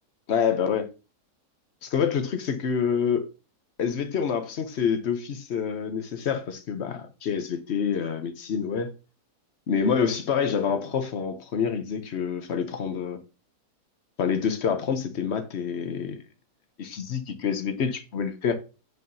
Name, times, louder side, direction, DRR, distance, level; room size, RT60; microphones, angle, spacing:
voice 1, 0.3-0.9 1.8-3.3 3.8-8.9 9.7-13.2 14.2-16.2 16.8-18.6, left 7 dB, 55° left, 0.9 m, -27 dB
7.7 x 5.5 x 2.7 m
omnidirectional pair, 1.7 m